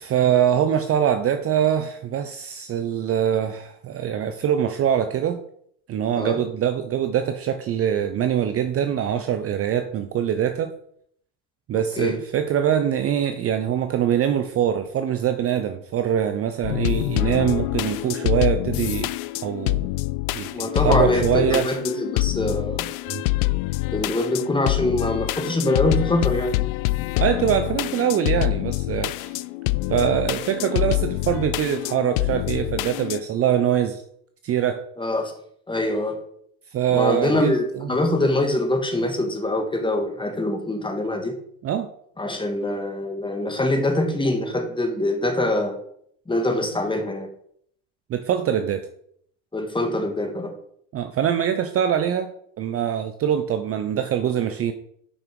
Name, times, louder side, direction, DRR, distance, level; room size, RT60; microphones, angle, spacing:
voice 1, 0.0-5.4 5.9-10.7 11.7-19.2 19.4-19.9 20.3-21.7 23.1-23.2 27.2-29.4 29.9-34.0 34.4-34.8 36.7-37.9 41.6-41.9 48.1-48.9 50.9-54.7, right 9 dB, 35° right, 8 dB, 0.6 m, -23 dB
voice 2, 11.7-12.1 20.5-22.9 23.9-26.5 35.0-35.3 35.7-36.2 36.9-41.3 42.2-45.8 46.3-47.3 49.5-50.5, left 1 dB, 10° left, 4 dB, 1.6 m, -24 dB
sound 1, 16.6-33.2, left 20 dB, 75° left, 0.5 m, -26 dB
6.0 x 5.8 x 5.2 m, 0.67 s
supercardioid pair, 100°, 43 cm